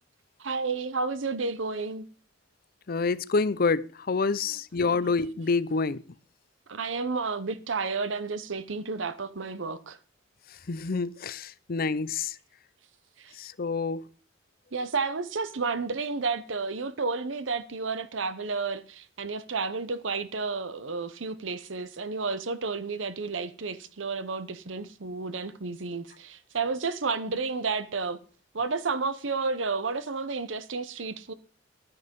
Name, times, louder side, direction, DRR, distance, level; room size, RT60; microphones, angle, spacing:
voice 1, 0.4-2.1 4.5-4.6 4.9-5.1 6.7-10.0 13.2-13.3 14.7-28.2 28.5-31.3, right 4 dB, 85° right, 0.9 m, -31 dB
voice 2, 2.9-6.0 10.7-12.3 13.4-14.1, left 4 dB, 50° left, 0.6 m, -27 dB
12.0 x 9.8 x 5.3 m
head